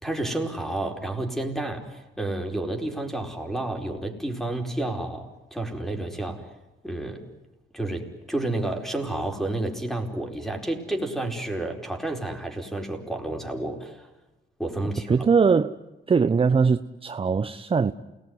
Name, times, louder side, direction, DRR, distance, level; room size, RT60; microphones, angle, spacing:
voice 1, 0.0-6.5 6.8-7.3 7.7-14.1 14.6-15.3, right 2 dB, ahead, 4.8 m, -30 dB
voice 2, 15.1-15.8 16.1-17.9, right 5 dB, 30° right, 0.8 m, -21 dB
28.5 x 19.5 x 9.6 m
cardioid pair, 90°, 20 cm